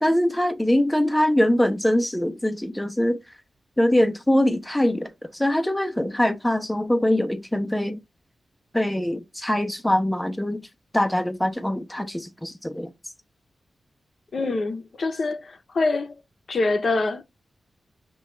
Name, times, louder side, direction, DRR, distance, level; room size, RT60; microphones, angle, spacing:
voice 1, 0.0-3.2 3.8-8.0 8.7-10.6 10.9-12.9, left 1 dB, 5° left, 0.5 m, -23 dB
voice 2, 14.3-16.1 16.5-17.2, left 3 dB, 55° left, 0.6 m, -25 dB
5.7 x 2.3 x 3.1 m
cardioid pair, 80°, 0 cm